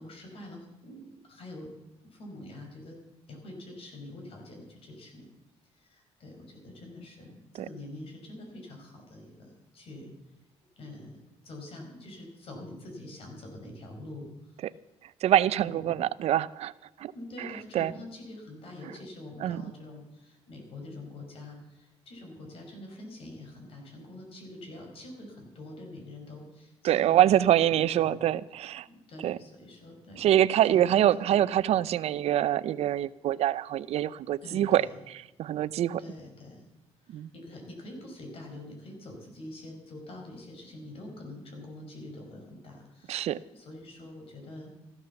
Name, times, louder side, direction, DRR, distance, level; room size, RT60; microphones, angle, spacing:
voice 1, 0.0-1.7 2.1-3.0 3.3-5.3 5.7-10.1 10.8-11.2 11.4-14.6 15.6-16.1 17.1-27.2 27.7-28.2 28.9-30.3 30.7-31.0 34.4-34.9 36.0-36.6 37.0-44.7, left 1 dB, 55° left, 2 dB, 5.4 m, -45 dB
voice 2, 15.0-17.1 17.4-17.9 18.8-18.9 19.4-19.6 26.8-28.9 29.2-29.4 30.2-36.0 37.1-37.3 43.1-43.4, right 12 dB, 70° right, 18 dB, 0.6 m, -25 dB
14.5 x 13.0 x 7.0 m, 0.96 s
cardioid pair, 115°, 11 cm